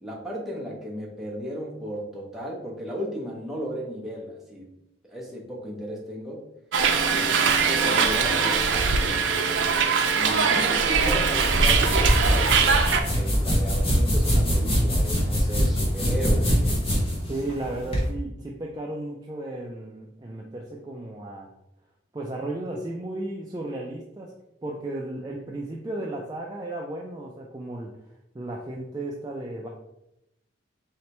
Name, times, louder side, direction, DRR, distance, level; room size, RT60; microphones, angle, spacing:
voice 1, 0.0-4.7 5.0-6.4 7.0-9.2 10.1-16.8 17.1-17.2, equal, ahead, -4 dB, 0.7 m, -35 dB
Hiss, 6.7-13.0, right 5 dB, 75° right, 0.5 m, -22 dB
sound 1, 10.9-18.1, equal, 30° left, 0.9 m, -23 dB
voice 2, 17.3-21.5 22.1-24.3 24.6-27.9 28.3-29.7, right 1 dB, 20° right, -1 dB, 0.3 m, -34 dB
4.0 x 3.3 x 3.0 m, 0.86 s
head